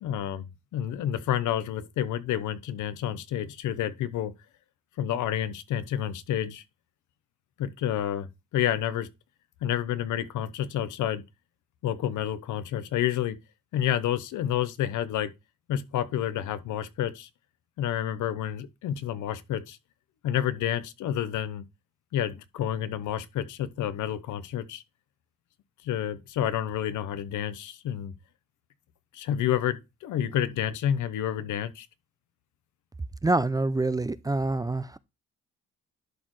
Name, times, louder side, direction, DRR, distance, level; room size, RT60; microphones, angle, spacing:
voice 1, 0.0-4.3 5.0-6.6 7.6-9.1 9.6-11.2 11.8-13.4 13.7-15.3 15.7-17.3 17.8-19.8 20.2-21.6 22.1-24.8 25.8-28.1 29.1-31.9, left 10 dB, 80° left, 0.9 m, -29 dB
voice 2, 33.2-35.0, right 2 dB, 15° right, 0.4 m, -26 dB
11.5 x 4.2 x 3.1 m
cardioid pair, 90°, 30 cm